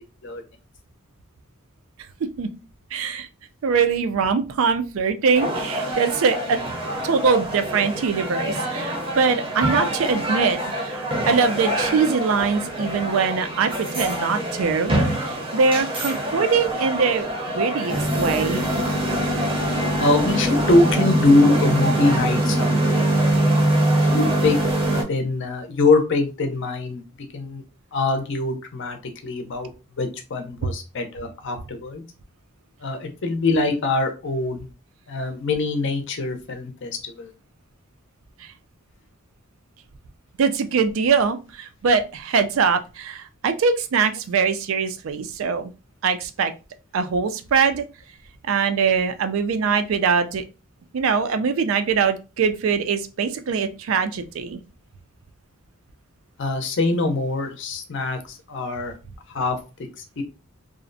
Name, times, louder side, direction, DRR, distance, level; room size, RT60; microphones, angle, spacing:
voice 1, 2.9-3.3 3.6-6.6 7.0-18.7 40.4-45.7 46.0-46.5 46.9-47.9 48.5-50.4 50.9-54.6, right 5 dB, 70° right, 9 dB, 0.4 m, -22 dB
sound 1, 5.3-25.0, right 1 dB, 25° right, 0.6 m, -24 dB
voice 2, 20.0-23.5 24.1-24.6 24.9-27.0 27.3-27.6 27.9-29.0 29.2-29.7 30.0-32.0 32.8-34.7 35.1-37.3 56.4-58.9 59.3-59.6 60.0-60.2, left 2 dB, 60° left, 5 dB, 0.5 m, -23 dB
2.4 x 2.0 x 2.5 m, 0.31 s
head